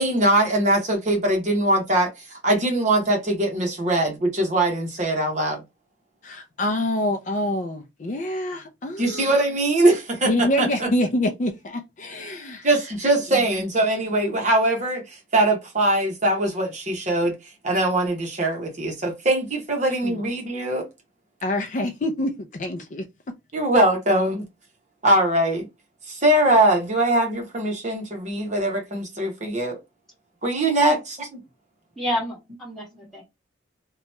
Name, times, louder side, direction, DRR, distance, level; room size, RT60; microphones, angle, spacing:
voice 1, 0.0-5.6 9.0-10.3 10.6-10.9 12.6-17.3 17.6-20.8 23.5-24.4 25.0-25.7 26.1-29.8 30.4-31.0, right 1 dB, 35° right, 0.9 m, -21 dB
voice 2, 6.2-9.3 10.3-12.7 13.3-13.4 20.0-20.2 21.4-23.1, left 1 dB, 40° left, 0.4 m, -26 dB
voice 3, 32.0-33.2, left 1 dB, ahead, 1.4 m, -28 dB
2.9 x 2.2 x 4.1 m
head